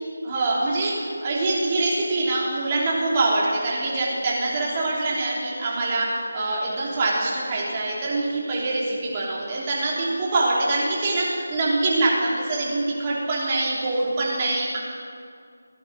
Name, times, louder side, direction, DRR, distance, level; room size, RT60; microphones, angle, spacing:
voice 1, 0.2-14.8, right 2 dB, 30° right, -5 dB, 3.4 m, -24 dB
17.0 x 10.5 x 5.3 m, 2.2 s
figure-of-eight pair, 160°, 0 cm